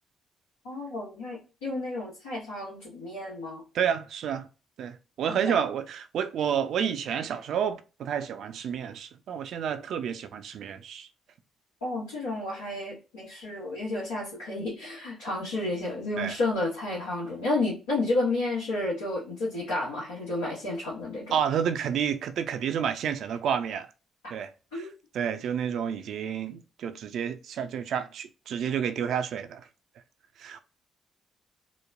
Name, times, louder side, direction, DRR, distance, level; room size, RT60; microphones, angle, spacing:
voice 1, 0.6-3.6 5.3-5.6 11.8-21.4 24.7-24.9, left 2 dB, 85° left, 0.9 m, -31 dB
voice 2, 3.7-4.5 4.8-11.1 16.2-16.4 21.3-23.9 24.3-24.8 25.1-29.7 30.4-30.6, right 8 dB, 65° right, 0.3 m, -30 dB
3.0 x 2.1 x 2.3 m
hypercardioid pair, 45°, 0 cm